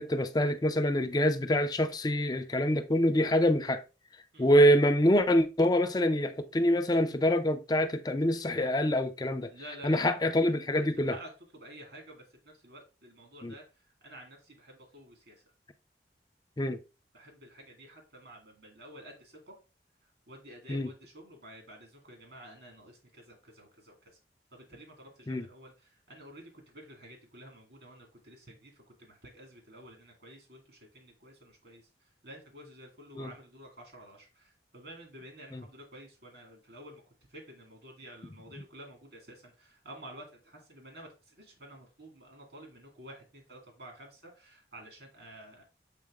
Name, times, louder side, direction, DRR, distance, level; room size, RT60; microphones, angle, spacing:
voice 1, 0.0-3.8 4.4-9.5 9.8-11.2 13.4-13.5 16.6-16.8 20.7-20.9 25.3-25.5 33.2-33.3 35.5-35.6, equal, 20° left, 0.5 m, -25 dB
voice 2, 9.5-13.6 14.0-15.4 17.1-19.5 20.3-24.1 24.5-31.8 32.2-37.0 37.3-45.6, right 1 dB, 75° right, 2.2 m, -51 dB
7.6 x 3.8 x 3.6 m
head